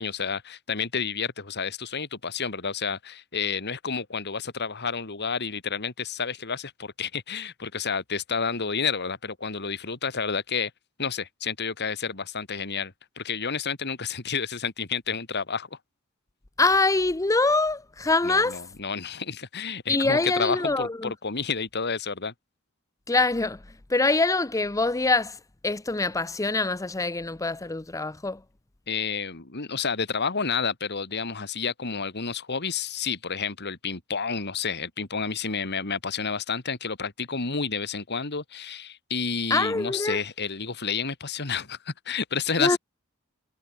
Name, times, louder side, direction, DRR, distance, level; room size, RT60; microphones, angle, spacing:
voice 1, 0.0-10.7 11.0-15.8 18.2-22.3 28.9-42.8, left 5 dB, 50° left, 2.4 m, -30 dB
voice 2, 16.6-18.6 19.9-21.1 23.1-23.6 23.9-25.4 25.6-28.4 39.5-40.2 42.6-42.8, left 3 dB, 15° left, 0.6 m, -24 dB
head